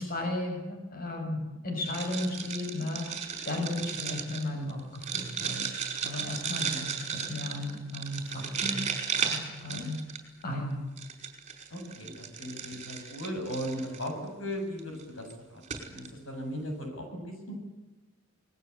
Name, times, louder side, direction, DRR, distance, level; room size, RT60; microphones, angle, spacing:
voice 1, 0.0-5.7 6.0-8.9 9.2-10.0 10.4-10.8, left 1 dB, 50° left, 3 dB, 6.8 m, -35 dB
sound 1, 1.8-10.4 11.0-14.1 14.8-15.0 15.3-15.4 15.6-16.1, right 7 dB, 35° right, 5.1 m, -35 dB
voice 2, 11.7-15.6 15.9-17.5, equal, 75° left, 4 dB, 7.8 m, -37 dB
27.0 x 20.5 x 8.5 m, 1.1 s
head